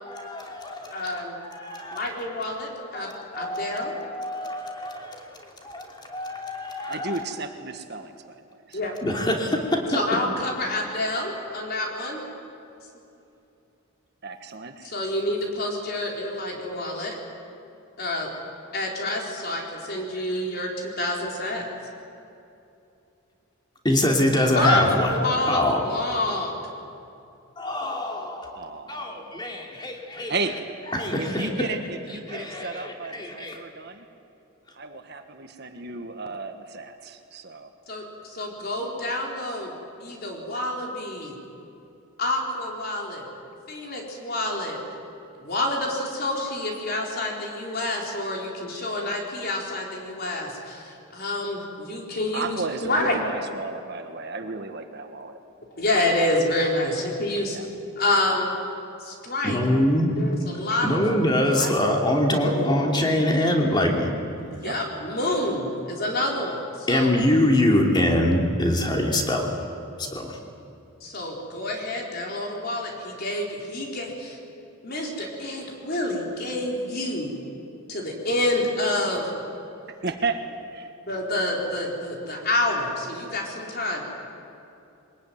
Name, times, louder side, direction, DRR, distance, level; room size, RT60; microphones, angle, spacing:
voice 1, 0.1-1.2 1.5-2.0 2.9-5.2 5.6-7.2 9.0-10.0 23.8-25.2 25.4-25.8 27.6-28.6 28.9-30.3 30.9-31.5 32.3-33.6 59.4-60.1 60.8-64.1 66.9-69.5 70.0-70.4, left 1 dB, 20° left, 1 dB, 2.9 m, -24 dB
voice 2, 0.9-1.4 1.9-3.9 8.7-8.9 9.9-12.2 14.8-17.1 18.0-18.3 18.7-21.6 24.5-26.5 37.9-39.7 40.0-41.4 42.2-43.3 43.7-44.8 45.4-53.2 55.7-57.6 58.0-58.5 59.0-59.6 60.2-61.0 61.4-61.7 62.3-62.8 64.5-67.1 71.0-74.4 74.8-77.4 77.9-79.3 81.1-84.0, left 1 dB, 45° left, 0 dB, 4.4 m, -28 dB
voice 3, 6.9-8.4 8.7-8.9 14.2-14.9 28.5-29.6 30.3-30.6 31.2-34.1 34.7-37.7 52.3-55.4 56.8-57.0 57.5-57.7 64.6-64.8 80.0-80.4 80.7-80.9, right 3 dB, 50° right, 6 dB, 1.6 m, -34 dB
23.5 x 20.0 x 9.5 m, 2.8 s
head